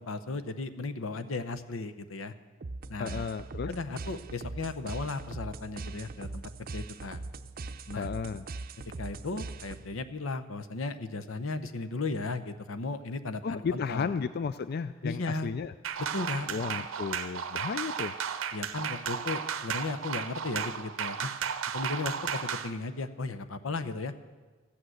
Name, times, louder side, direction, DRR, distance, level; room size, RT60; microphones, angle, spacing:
voice 1, 0.0-2.3 2.9-3.3 3.7-6.4 6.7-7.2 7.9-8.1 9.0-14.1 15.0-15.5 16.1-16.5 18.5-21.3 21.7-24.1, left 3 dB, 85° left, 12 dB, 0.8 m, -35 dB
sound 1, 2.6-10.1, right 3 dB, 45° right, 0.6 m, -41 dB
voice 2, 3.0-3.7 8.0-8.4 13.4-15.7 16.5-18.2, left 5 dB, 50° left, 13 dB, 0.3 m, -33 dB
sound 2, 15.8-22.7, right 7 dB, 85° right, 0.7 m, -34 dB
14.0 x 8.7 x 7.9 m, 1.3 s
head